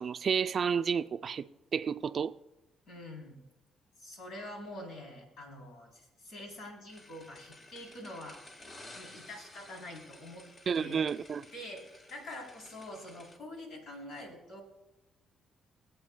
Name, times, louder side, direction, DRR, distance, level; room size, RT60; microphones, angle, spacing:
voice 1, 0.0-1.5 1.7-2.3 10.7-11.4, right 6 dB, 50° right, 0.4 m, -31 dB
voice 2, 2.9-3.4 4.0-8.4 8.9-10.5 10.8-11.0 11.5-14.6, left 1 dB, 75° left, 3.4 m, -45 dB
sound 1, 6.9-13.4, left 1 dB, 40° left, 1.6 m, -54 dB
21.0 x 8.1 x 2.3 m
cardioid pair, 90°, 0 cm